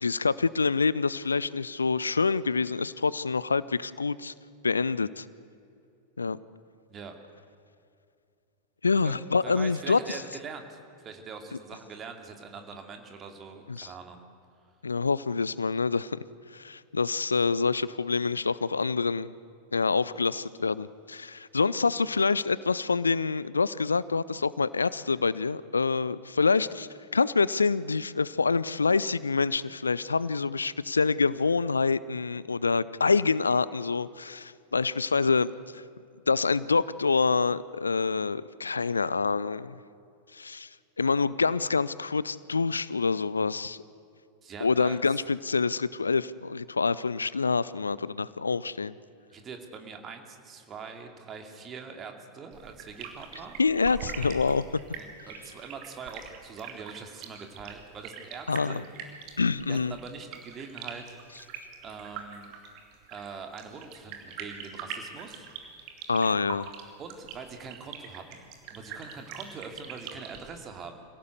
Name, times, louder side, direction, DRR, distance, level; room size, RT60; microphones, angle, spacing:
voice 1, 0.0-4.3 4.6-5.2 6.2-6.4 8.8-10.2 13.7-13.9 14.8-16.2 16.5-19.3 19.7-35.8 36.3-39.7 40.3-40.7 41.0-43.8 44.6-48.9 53.6-54.6 58.5-58.8 59.4-59.9 66.1-66.7, left 4 dB, 75° left, 19 dB, 0.5 m, -26 dB
voice 2, 9.0-14.2 44.4-45.2 49.3-53.6 55.0-58.8 59.7-61.2 61.8-62.6 63.1-65.5 67.0-68.4 68.7-71.1, right 5 dB, 25° right, 5 dB, 2.6 m, -43 dB
sound 1, 52.5-70.5, right 7 dB, 40° right, 2.6 m, -42 dB
26.0 x 17.0 x 8.1 m, 2.5 s
figure-of-eight pair, 90°, 0 cm